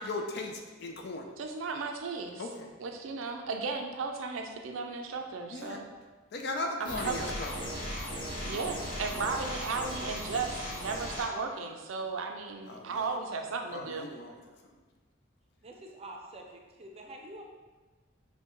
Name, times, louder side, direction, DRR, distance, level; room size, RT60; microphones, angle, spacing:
voice 1, 0.0-1.3 2.4-2.7 5.5-5.8 6.3-7.5 9.1-9.2 12.7-13.0 13.7-14.4, left 2 dB, 55° left, 3 dB, 0.5 m, -37 dB
voice 2, 1.4-2.4 2.8-5.9 6.8-7.3 8.4-14.1, right 4 dB, 85° right, 4 dB, 0.4 m, -35 dB
sound 1, 6.8-11.2, equal, 25° left, 1.3 m, -37 dB
voice 3, 15.6-17.4, right 1 dB, 30° right, 1 dB, 0.5 m, -46 dB
5.6 x 2.2 x 3.0 m, 1.3 s
head